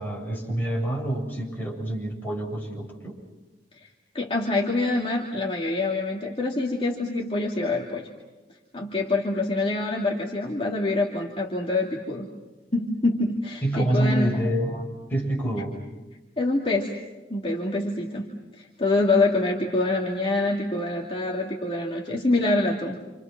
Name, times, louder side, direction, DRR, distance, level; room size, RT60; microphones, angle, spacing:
voice 1, 0.0-3.2 13.6-15.7, right 1 dB, 10° left, -3 dB, 7.8 m, -27 dB
voice 2, 4.1-8.0 8.7-12.3 12.7-14.4 16.4-17.0 17.3-18.3 18.6-23.0, left 2 dB, 30° left, -2 dB, 2.6 m, -25 dB
29.0 x 28.5 x 6.1 m, 1.2 s
head